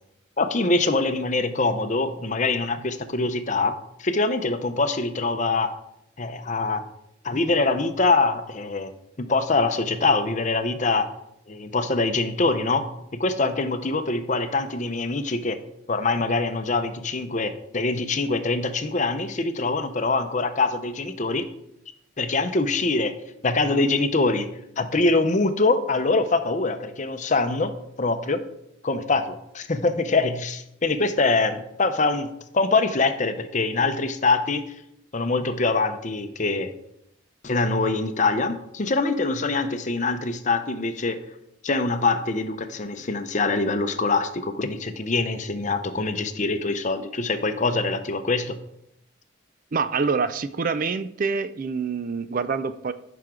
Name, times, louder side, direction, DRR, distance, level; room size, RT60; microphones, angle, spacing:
voice 1, 0.4-5.7 6.2-6.8 7.2-8.9 9.2-11.1 11.5-15.6 15.9-21.5 22.2-23.1 23.4-24.5 24.8-27.7 28.0-28.4 28.8-32.3 32.5-34.6 35.1-36.7 37.4-41.2 41.6-48.6, left 3 dB, 40° left, 9 dB, 0.7 m, -24 dB
voice 2, 49.7-52.9, right 5 dB, 45° right, 13 dB, 0.4 m, -26 dB
14.0 x 6.0 x 3.8 m, 0.79 s
head